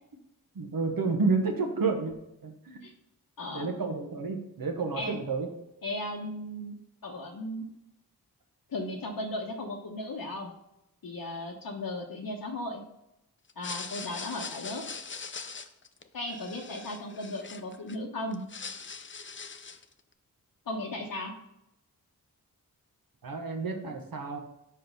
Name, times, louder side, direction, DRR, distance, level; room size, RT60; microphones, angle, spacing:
voice 1, 0.5-2.1 2.4-2.8 3.5-5.5 23.2-24.4, right 4 dB, 65° right, 3 dB, 1.1 m, -30 dB
voice 2, 3.4-3.7 5.0-5.2 5.8-6.8 7.0-7.7 8.7-10.5 11.0-12.8 13.6-14.9 16.1-18.4 20.7-21.3, left 1 dB, 65° left, -1 dB, 0.9 m, -36 dB
sound 1, 13.5-18.0 18.3-19.9, left 5 dB, 30° left, 0.5 m, -41 dB
5.1 x 4.5 x 5.3 m, 0.85 s
cardioid pair, 55°, 37 cm